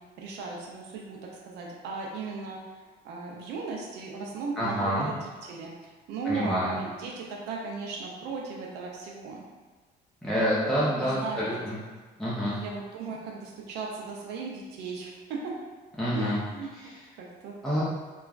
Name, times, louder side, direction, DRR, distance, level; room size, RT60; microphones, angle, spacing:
voice 1, 0.2-2.6 3.0-5.7 6.1-9.4 10.8-11.6 12.5-15.5 16.1-16.7 17.2-17.8, right 4 dB, 85° right, -1 dB, 0.5 m, -37 dB
voice 2, 4.6-5.1 6.2-6.8 10.2-11.8 12.2-12.6 16.0-16.4 16.7-17.0 17.6-17.8, equal, ahead, -9 dB, 0.6 m, -27 dB
2.9 x 2.3 x 2.4 m, 1.3 s
cardioid pair, 110°, 17 cm